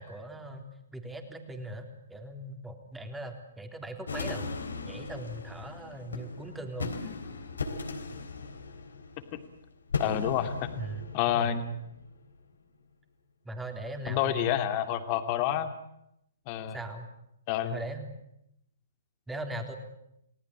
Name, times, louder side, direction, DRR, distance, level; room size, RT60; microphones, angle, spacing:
voice 1, 0.0-4.5 4.8-7.1 10.4-10.5 10.8-11.6 13.4-14.5 16.7-17.1 17.6-18.1 19.3-19.8, right 1 dB, 5° right, 5 dB, 3.5 m, -40 dB
sound 1, 4.1-12.3, left 4 dB, 75° left, 3.5 m, -38 dB
voice 2, 10.0-10.7 11.1-11.7 14.1-15.7 16.5-16.8 17.5-17.8, left 11 dB, 35° left, 8 dB, 2.5 m, -28 dB
30.0 x 19.0 x 8.7 m, 0.81 s
figure-of-eight pair, 125°, 0 cm